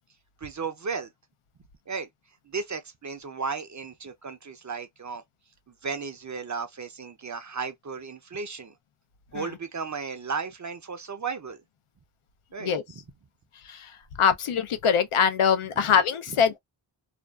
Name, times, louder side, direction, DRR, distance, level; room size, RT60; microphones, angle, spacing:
voice 1, 0.4-1.1 1.9-2.1 2.4-5.2 5.7-8.7 9.3-11.6 12.5-12.7 15.8-16.0 16.3-16.4, right 5 dB, 35° right, 0.5 m, -34 dB
voice 2, 14.2-16.6, left 7 dB, 80° left, 0.6 m, -23 dB
2.5 x 2.3 x 2.2 m
wide cardioid pair, 105°, 49 cm